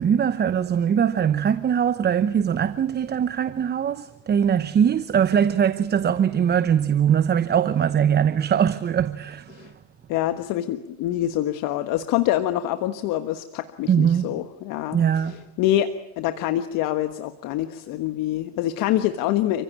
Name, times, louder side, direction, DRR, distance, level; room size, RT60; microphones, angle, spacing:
voice 1, 0.0-9.7 13.9-14.3 14.9-15.5, right 8 dB, 25° right, 0.9 m, -21 dB
voice 2, 10.1-15.0 15.2-19.6, left 13 dB, 60° left, 1.4 m, -25 dB
29.5 x 16.0 x 8.6 m
supercardioid pair, 105°, 37 cm